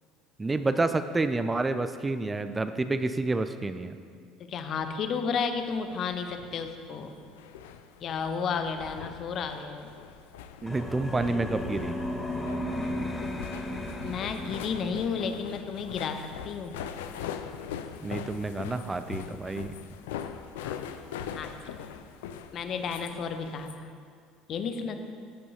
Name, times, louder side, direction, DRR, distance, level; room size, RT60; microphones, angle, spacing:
voice 1, 0.4-4.0 10.6-11.9 18.0-19.7, right 3 dB, 20° right, 10 dB, 0.3 m, -29 dB
voice 2, 4.4-7.2 8.0-9.9 14.0-16.8 20.6-20.8 21.3-21.5 22.5-23.9 24.5-25.0, left 5 dB, 45° left, 7 dB, 0.7 m, -32 dB
sound 1, 5.8-23.8, left 8 dB, 70° left, 0.3 m, -42 dB
sound 2, 10.7-15.3, left 1 dB, 10° left, 0.9 m, -35 dB
14.5 x 5.4 x 2.7 m, 2.2 s
figure-of-eight pair, 65°, 0 cm